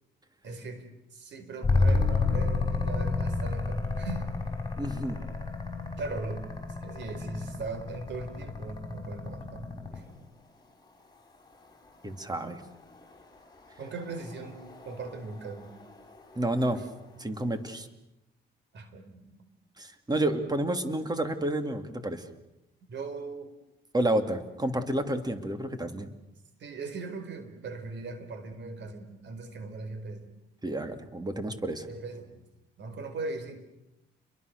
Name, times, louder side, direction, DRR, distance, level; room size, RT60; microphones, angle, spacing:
voice 1, 0.4-4.4 6.0-6.5 6.8-10.0 13.8-15.7 18.7-19.5 22.9-23.5 26.6-30.3 31.9-32.4 32.8-33.6, right 3 dB, 65° right, 9 dB, 4.5 m, -39 dB
sound 1, 1.6-10.2 12.4-17.0, left 3 dB, 20° left, 6.1 m, -31 dB
voice 2, 4.8-5.2 12.0-12.6 16.3-16.8 17.2-17.9 19.8-22.2 23.9-26.1 30.6-31.9, right 1 dB, 20° right, 8 dB, 2.9 m, -30 dB
29.5 x 23.0 x 6.8 m, 0.92 s
cardioid pair, 90°, 20 cm